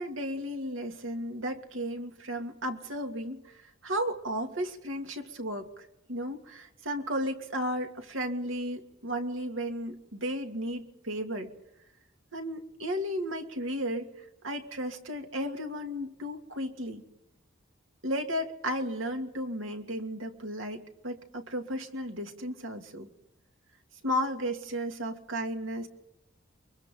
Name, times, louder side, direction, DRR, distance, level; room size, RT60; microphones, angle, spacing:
voice 1, 0.0-11.5 12.3-14.1 14.4-17.0 18.0-23.1 24.0-25.9, equal, 80° right, 5 dB, 2.5 m, -34 dB
29.0 x 23.5 x 3.9 m, 0.87 s
head